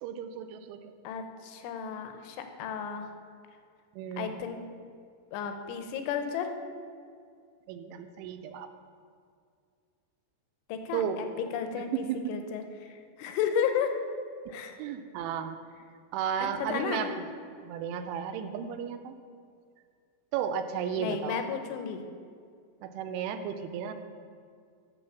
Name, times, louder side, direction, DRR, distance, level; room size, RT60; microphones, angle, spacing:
voice 1, 0.0-0.9 3.9-4.3 7.7-8.7 10.9-11.3 11.7-12.5 14.5-15.6 16.1-17.1 17.6-19.1 20.3-21.4 22.8-23.9, right 8 dB, 85° right, 7 dB, 3.0 m, -34 dB
voice 2, 1.0-3.1 4.2-4.6 5.3-6.5 10.7-14.0 14.5-14.8 16.4-17.1 21.0-22.0, left 7 dB, 80° left, 6 dB, 3.2 m, -33 dB
9.3 x 7.1 x 6.9 m, 2.2 s
omnidirectional pair, 5.5 m